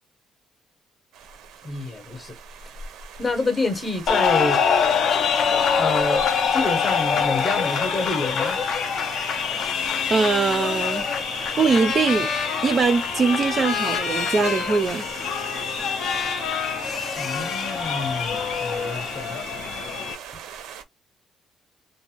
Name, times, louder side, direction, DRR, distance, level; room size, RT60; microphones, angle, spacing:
sound 1, 1.1-20.8, right 7 dB, 90° right, 0.5 m, -40 dB
voice 1, 1.6-2.4 3.2-4.6 5.7-8.6 17.2-19.4, left 3 dB, 20° left, 0.7 m, -28 dB
sound 2, 4.1-20.1, left 7 dB, 55° left, 0.4 m, -25 dB
voice 2, 10.1-11.1 11.6-12.3 12.6-15.0, right 4 dB, 30° right, 0.4 m, -21 dB
Trumpet, 11.6-17.8, left 6 dB, 80° left, 0.8 m, -31 dB
2.5 x 2.0 x 2.8 m
cardioid pair, 175°, 0 cm